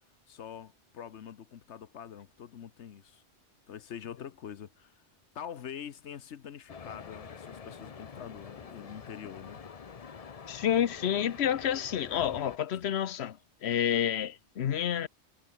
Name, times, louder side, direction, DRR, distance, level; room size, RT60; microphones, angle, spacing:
voice 1, 0.3-3.2 3.7-5.0 5.3-9.6 12.7-12.9, left 8 dB, 90° left, 1.2 m, -45 dB
sound 1, 6.7-12.6, left 6 dB, 40° left, 0.7 m, -46 dB
voice 2, 10.5-15.1, left 9 dB, 70° left, 1.1 m, -29 dB
omnidirectional pair, 1.1 m